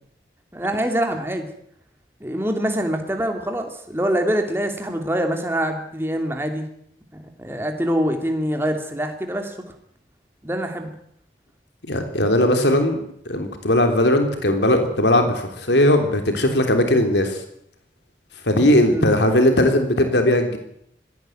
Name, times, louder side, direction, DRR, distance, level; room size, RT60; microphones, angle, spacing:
voice 1, 0.5-1.5 2.2-6.7 7.1-9.6 10.4-10.9 18.9-19.1, equal, 15° right, 4 dB, 2.9 m, -24 dB
voice 2, 11.9-13.0 13.2-17.4 18.5-20.6, left 1 dB, 80° left, 5 dB, 3.3 m, -18 dB
19.0 x 16.0 x 9.2 m, 0.70 s
head